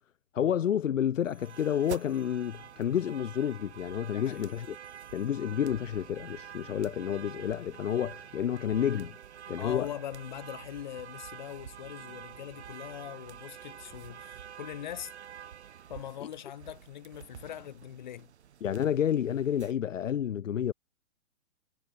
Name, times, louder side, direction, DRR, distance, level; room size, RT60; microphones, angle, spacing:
voice 1, 0.3-4.8 5.1-9.2 9.5-9.9 18.6-20.7, left 9 dB, 65° left, 1.1 m, -30 dB
sound 1, 0.8-3.9 4.2-6.2, right 3 dB, 5° right, 2.5 m, -67 dB
sound 2, 1.3-19.7, right 9 dB, 55° right, 2.0 m, -47 dB
voice 2, 4.0-4.5 9.6-15.1 15.9-18.3, left 11 dB, 35° left, 1.6 m, -42 dB
hypercardioid pair, 180°, 40 cm